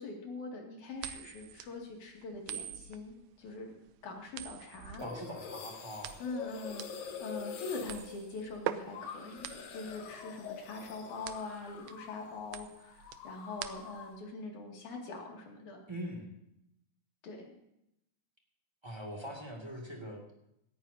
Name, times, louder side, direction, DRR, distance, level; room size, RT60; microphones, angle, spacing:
voice 1, 0.0-3.7 4.0-5.0 6.2-15.8 17.2-17.5, left 3 dB, 65° left, 0 dB, 3.7 m, -43 dB
sound 1, 1.0-14.2, right 12 dB, 85° right, 1.5 m, -44 dB
sound 2, 5.0-12.4 12.6-14.2, left 6 dB, 90° left, 3.1 m, -46 dB
voice 2, 5.0-6.2 15.9-16.3 18.8-20.3, equal, 10° right, 0 dB, 1.7 m, -42 dB
18.5 x 14.0 x 2.8 m, 0.80 s
omnidirectional pair, 3.8 m